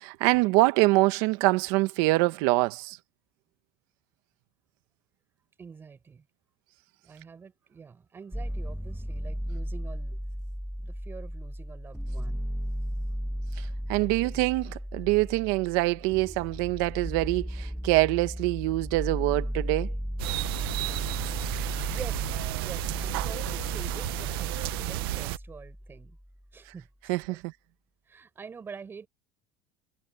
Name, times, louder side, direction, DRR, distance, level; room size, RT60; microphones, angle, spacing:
voice 1, 0.0-3.0 13.6-19.9 27.1-27.5, right 22 dB, 65° right, 1.3 m, -25 dB
voice 2, 5.6-6.2 7.0-10.2 10.8-12.5 14.0-14.4 21.9-22.3 22.6-26.2 26.5-26.9 27.2-27.4 28.1-29.1, right 5 dB, 20° right, 4.4 m, -46 dB
sound 1, 8.3-26.3, equal, ahead, 1.4 m, -35 dB
sound 2, 20.2-25.4, right 20 dB, 80° right, 0.6 m, -32 dB
cardioid pair, 155°, 12 cm